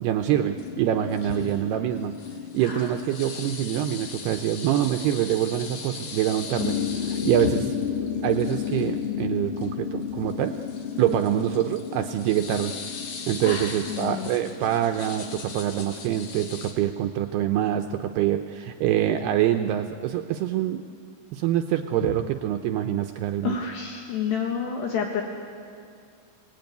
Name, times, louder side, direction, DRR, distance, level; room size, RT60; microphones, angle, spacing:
voice 1, 0.0-2.1 2.5-7.6 8.2-10.6 11.0-12.8 13.3-20.8 21.3-23.6, right 11 dB, 80° right, 6 dB, 2.4 m, -25 dB
sound 1, 0.6-16.7, left 7 dB, 55° left, 2.8 m, -33 dB
voice 2, 1.3-1.6 2.6-2.9 7.4-7.7 10.9-11.2 13.4-14.3 22.1-22.2 23.4-25.2, left 6 dB, 70° left, 1 dB, 3.6 m, -30 dB
30.0 x 18.5 x 9.3 m, 2.3 s
omnidirectional pair, 5.3 m